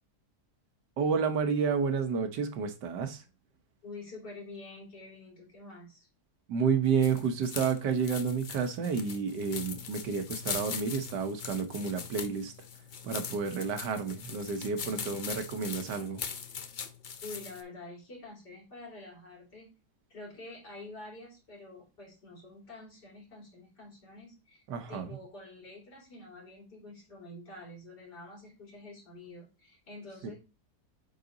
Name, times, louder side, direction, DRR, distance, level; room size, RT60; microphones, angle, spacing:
voice 1, 1.0-3.2 6.5-12.5 13.0-16.2 24.7-25.1, right 6 dB, 90° right, 1.7 m, -30 dB
voice 2, 3.8-6.1 14.6-15.2 16.6-16.7 17.2-19.7 20.1-24.6 24.9-30.4, left 2 dB, 80° left, 4.0 m, -48 dB
sound 1, 6.8-17.6, left 7 dB, 65° left, 0.4 m, -41 dB
8.4 x 4.2 x 3.9 m
omnidirectional pair, 1.8 m